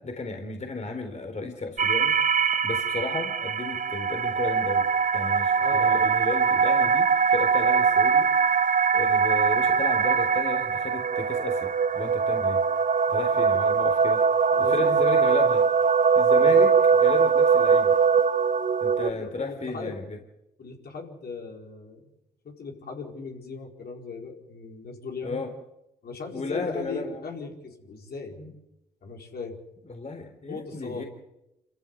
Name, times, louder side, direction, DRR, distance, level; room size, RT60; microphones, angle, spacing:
voice 1, 0.0-2.1 2.6-4.9 5.1-8.3 8.9-12.6 13.1-14.2 14.7-15.7 16.2-18.0 18.8-20.0 25.2-25.5 26.3-27.2 28.3-28.5 29.9-31.1, left 3 dB, 40° left, 4 dB, 3.9 m, -33 dB
sound 1, 1.8-19.1, right 6 dB, 45° right, 1.1 m, -22 dB
voice 2, 5.6-6.1 14.5-15.0 16.4-16.6 19.1-20.0 20.6-22.0 22.4-25.4 26.0-28.4 29.0-29.6 30.5-31.0, left 4 dB, 60° left, 1 dB, 4.9 m, -38 dB
27.5 x 15.0 x 8.2 m, 0.89 s
hypercardioid pair, 50°, 18 cm